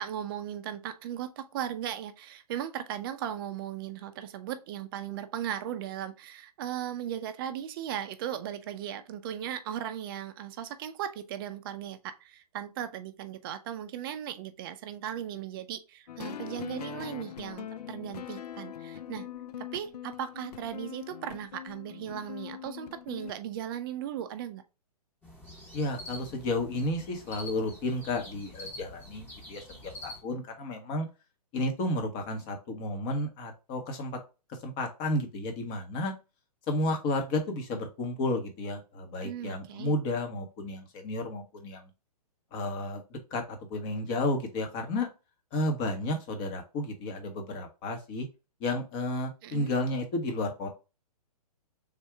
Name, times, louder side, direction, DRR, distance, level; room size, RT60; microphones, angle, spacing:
voice 1, 0.0-19.3 19.6-24.6 39.2-39.9 49.4-49.7, right 10 dB, 35° right, 0.4 m, -37 dB
sound 1, 16.1-23.3, left 10 dB, 75° left, 0.4 m, -42 dB
sound 2, 25.2-30.2, left 1 dB, 10° left, 1.2 m, -46 dB
voice 2, 25.7-31.1 31.5-34.2 34.6-36.1 36.7-41.9 42.5-45.1 45.5-48.3 48.6-50.7, left 2 dB, 30° left, 1.1 m, -32 dB
3.6 x 2.6 x 4.6 m
hypercardioid pair, 130°, 20 cm